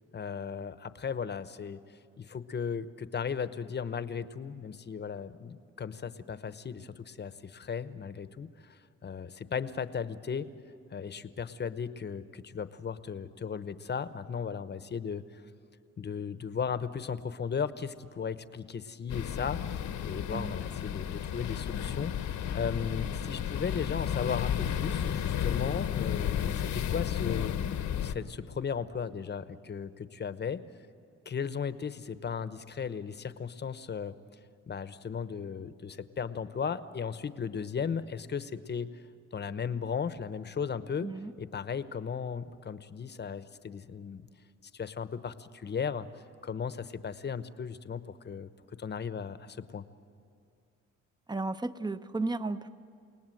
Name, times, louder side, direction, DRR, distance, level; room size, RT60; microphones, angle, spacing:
voice 1, 0.1-1.8 2.2-10.5 10.9-15.2 16.0-27.5 28.0-30.6 31.3-34.1 34.7-38.9 39.3-41.1 41.4-44.3 44.7-46.1 46.4-48.5 48.8-49.8, left 6 dB, 35° left, 13 dB, 1.0 m, -36 dB
sound 1, 19.1-28.1, left 9 dB, 70° left, 1.1 m, -32 dB
voice 2, 51.3-52.7, right 3 dB, 15° right, 12 dB, 0.8 m, -33 dB
29.5 x 18.5 x 7.8 m, 2.3 s
cardioid pair, 90°, 30 cm